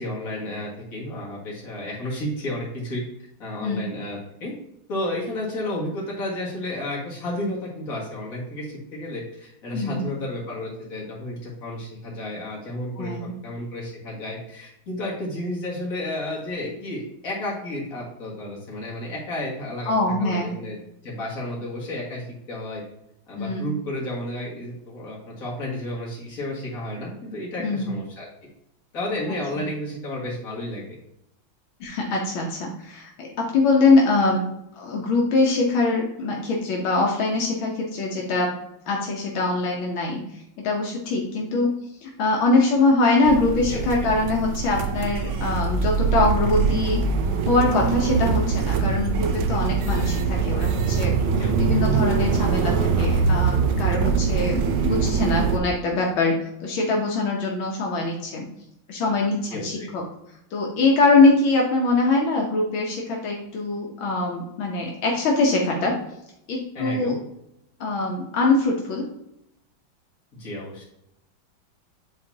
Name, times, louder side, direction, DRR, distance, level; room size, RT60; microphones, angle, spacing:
voice 1, 0.0-3.0 3.4-4.5 4.9-20.8 21.0-22.8 23.3-28.3 28.9-30.8 43.7-43.9 51.3-51.8 59.5-59.9 66.7-67.1 70.4-70.9, left 1 dB, 45° left, -4 dB, 2.3 m, -32 dB
voice 2, 9.7-10.0 13.0-13.3 19.9-20.6 23.4-23.7 27.6-27.9 31.8-33.3 33.5-34.4 34.8-38.5 38.9-40.2 40.6-41.7 42.0-47.0 47.5-51.1 51.6-56.4 56.6-58.5 58.9-60.0 60.5-66.0 66.5-67.2 67.8-69.1, left 3 dB, 80° left, -1 dB, 1.7 m, -23 dB
sound 1, 43.2-55.6, right 5 dB, 90° right, 1.5 m, -23 dB
9.1 x 4.0 x 2.8 m, 0.81 s
omnidirectional pair, 2.2 m